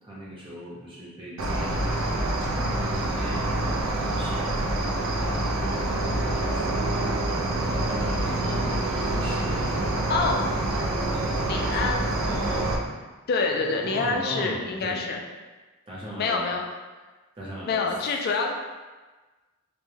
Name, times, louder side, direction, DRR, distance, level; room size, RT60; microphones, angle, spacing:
voice 1, 0.0-2.1 2.6-4.8 5.2-7.5 7.7-10.2 11.1-12.0 12.6-12.9 13.5-15.0 15.9-16.5 17.4-17.9, equal, 25° right, -7 dB, 0.7 m, -39 dB
Cricket, 1.4-12.8, right 1 dB, 80° right, 0.4 m, -26 dB
voice 2, 10.1-10.5 11.5-12.7 13.3-15.2 16.2-16.6 17.7-18.5, left 4 dB, 50° left, 2 dB, 0.3 m, -27 dB
2.1 x 2.1 x 3.1 m, 1.3 s
head